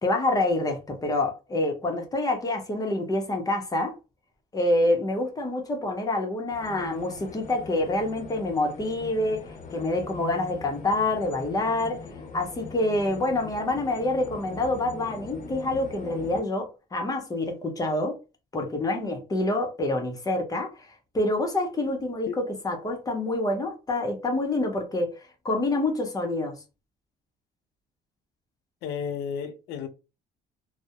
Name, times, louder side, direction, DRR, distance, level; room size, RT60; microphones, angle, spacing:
voice 1, 0.0-4.0 4.5-9.4 9.7-12.0 12.3-18.2 18.5-25.2 25.4-26.6, left 2 dB, 20° left, 0.7 m, -27 dB
sound 1, 6.5-16.4, left 3 dB, 50° left, 0.7 m, -42 dB
voice 2, 28.8-29.9, left 7 dB, 85° left, 0.5 m, -32 dB
2.2 x 2.0 x 2.8 m
cardioid pair, 110°, 17 cm